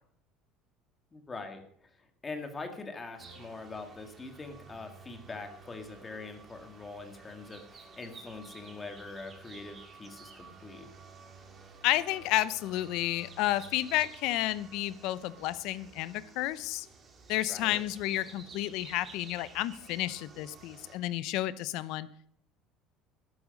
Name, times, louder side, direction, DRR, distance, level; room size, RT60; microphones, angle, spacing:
voice 1, 1.1-1.6 2.2-10.9 17.5-17.8, left 3 dB, 15° left, 6 dB, 1.8 m, -43 dB
sound 1, 3.2-21.0, right 4 dB, 25° right, 2.3 m, -52 dB
voice 2, 11.8-16.9 17.3-22.1, left 15 dB, 60° left, 16 dB, 0.8 m, -31 dB
13.5 x 12.5 x 5.3 m, 0.67 s
cardioid pair, 165°, 0 cm